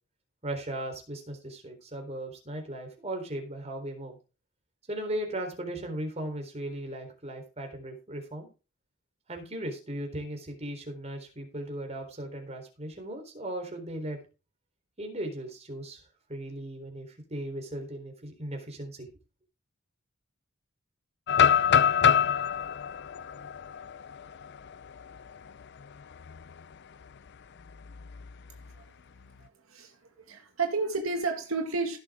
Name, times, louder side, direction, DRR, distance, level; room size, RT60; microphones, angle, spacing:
voice 1, 0.4-4.2 4.9-8.5 9.3-14.2 15.0-16.0 16.3-19.1, right 1 dB, 30° right, 3.9 m, -37 dB
sound 1, 21.3-25.2 25.6-25.7 26.2-26.5 27.9-28.7, left 8 dB, 55° left, 0.5 m, -25 dB
voice 2, 29.7-32.0, right 4 dB, 75° right, 2.1 m, -31 dB
17.0 x 6.9 x 3.7 m
head